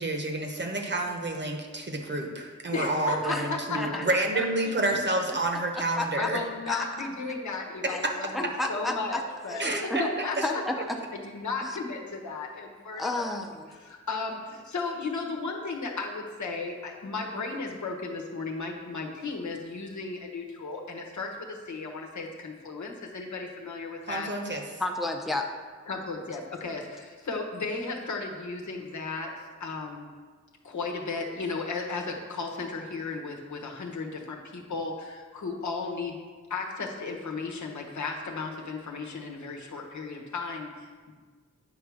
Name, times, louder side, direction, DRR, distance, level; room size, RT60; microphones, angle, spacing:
voice 1, 0.0-6.4 8.0-8.1 9.6-10.5 24.1-24.6, right 2 dB, 40° right, 2 dB, 0.9 m, -29 dB
voice 2, 2.7-4.0 4.3-4.7 6.2-9.7 10.0-10.8 11.2-13.3 13.8-24.3 25.9-29.3 29.6-30.1 30.6-36.2 36.5-41.1, left 4 dB, 75° left, 1 dB, 1.1 m, -35 dB
voice 3, 5.7-6.3 6.7-7.1 7.9-8.0 8.3-9.2 9.5-10.0 10.4-11.0 11.6-11.8 12.9-13.7 24.8-25.5, left 2 dB, ahead, 2 dB, 0.6 m, -32 dB
8.9 x 3.4 x 6.2 m, 1.5 s
wide cardioid pair, 95°, 29 cm